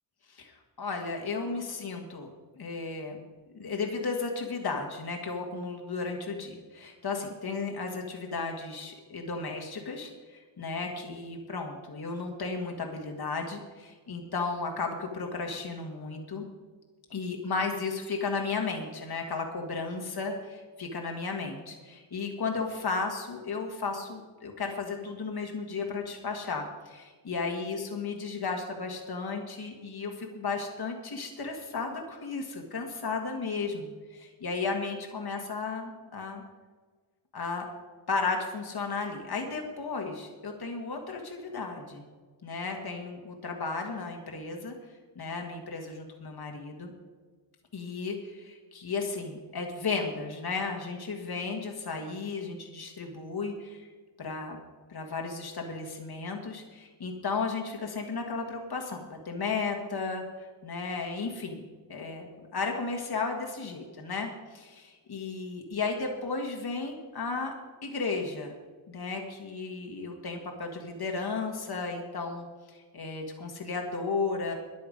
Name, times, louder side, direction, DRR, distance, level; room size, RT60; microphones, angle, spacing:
voice 1, 0.3-3.2 3.5-16.4 17.1-36.4 37.3-37.7 38.1-42.0 42.4-44.7 45.2-46.9 47.7-53.8 54.2-54.6 54.9-60.2 60.6-61.6 61.9-67.5 67.8-68.5 68.9-74.5, left 4 dB, 55° left, 2 dB, 1.7 m, -34 dB
14.0 x 10.5 x 5.2 m, 1.4 s
wide cardioid pair, 85°, 46 cm